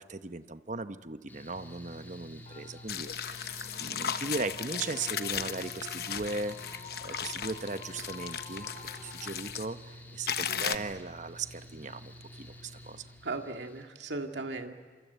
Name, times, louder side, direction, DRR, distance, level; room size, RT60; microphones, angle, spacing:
voice 1, 0.0-13.0, right 3 dB, 45° right, 11 dB, 0.9 m, -38 dB
Mechanical fan, 1.3-13.8, left 1 dB, 10° left, 3.2 m, -49 dB
sound 1, 2.5-9.3, left 3 dB, 30° left, 2.2 m, -49 dB
sound 2, 2.9-9.7 10.3-10.8, left 8 dB, 60° left, 1.0 m, -36 dB
voice 2, 10.5-10.8 13.2-14.7, right 3 dB, 85° right, 4 dB, 2.2 m, -37 dB
27.0 x 27.0 x 8.2 m, 1.5 s
head